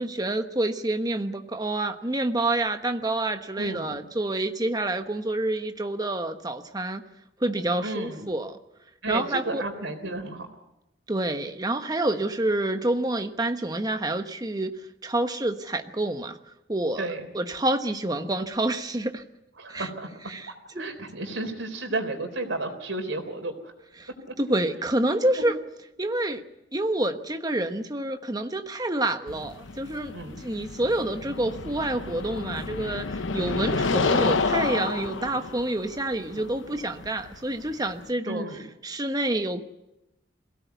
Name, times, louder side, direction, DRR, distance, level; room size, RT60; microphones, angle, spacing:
voice 1, 0.0-7.0 7.4-8.6 9.1-9.6 11.1-14.7 15.0-16.4 16.7-17.1 17.3-19.2 19.7-19.9 20.3-20.9 24.0-24.1 24.4-25.5 26.0-26.4 26.7-38.4 38.8-39.6, right 1 dB, 20° right, 7 dB, 1.1 m, -28 dB
voice 2, 3.6-4.1 7.8-8.3 9.0-10.5 17.0-17.3 19.6-20.4 20.8-23.7 30.1-30.4 38.3-38.7, right 2 dB, 85° right, 5 dB, 3.7 m, -33 dB
sound 1, 29.3-38.1, left 4 dB, 85° left, 0.8 m, -30 dB
22.5 x 17.0 x 8.2 m, 0.91 s
head